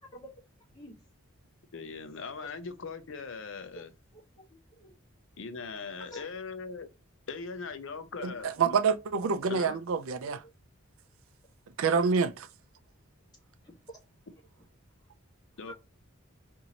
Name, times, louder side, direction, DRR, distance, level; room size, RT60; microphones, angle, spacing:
voice 1, 1.7-3.9 5.4-6.9 7.3-8.8 9.5-9.8 15.6-15.7, left 4 dB, 60° left, 0.6 m, -40 dB
voice 2, 4.1-4.9 5.9-6.2 8.2-8.4 9.7-9.8 10.2-10.5 13.6-14.0 15.7-15.8, right 1 dB, 20° left, 1.4 m, -49 dB
voice 3, 8.2-10.4 11.8-12.5, right 5 dB, 75° right, 0.4 m, -27 dB
4.1 x 2.7 x 2.8 m
head